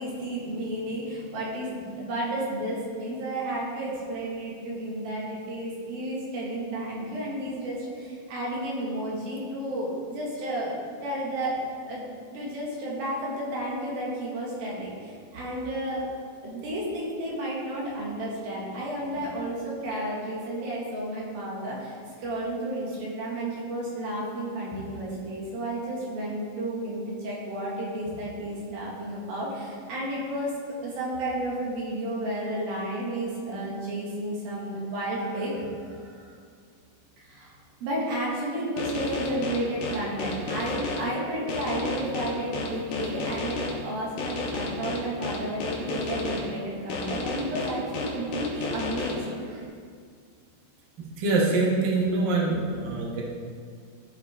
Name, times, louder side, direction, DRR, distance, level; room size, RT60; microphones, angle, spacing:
voice 1, 0.0-10.7 11.0-11.6 11.9-12.1 12.3-16.1 16.4-30.5 30.8-36.3 37.2-37.5 37.8-49.6, right 1 dB, 75° right, -5 dB, 3.7 m, -32 dB
sound 1, 38.8-41.0 41.5-43.7 44.2-46.4 46.9-49.1, left 3 dB, 70° left, 2.8 m, -31 dB
voice 2, 51.2-53.2, right 3 dB, 60° right, -3 dB, 1.1 m, -24 dB
15.5 x 5.1 x 3.6 m, 2.1 s
omnidirectional pair, 4.2 m